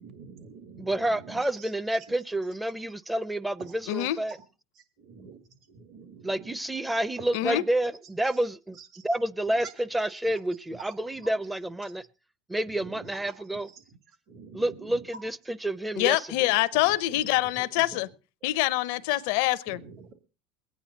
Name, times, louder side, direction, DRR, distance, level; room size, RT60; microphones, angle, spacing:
voice 1, 0.0-1.7 5.0-5.4 5.7-6.5 8.9-9.1 12.7-13.1 14.3-14.7 16.7-16.8 17.1-17.2 17.6-17.7 17.9-18.0 19.7-20.1, right 5 dB, 55° right, 2.1 m, -47 dB
voice 2, 0.8-4.4 6.2-8.8 9.0-12.1 12.5-13.7 14.5-16.5, right 1 dB, 10° right, 0.6 m, -29 dB
voice 3, 16.0-18.1 18.4-19.8, left 17 dB, 75° left, 0.6 m, -25 dB
22.0 x 9.3 x 3.9 m
supercardioid pair, 100°, 0 cm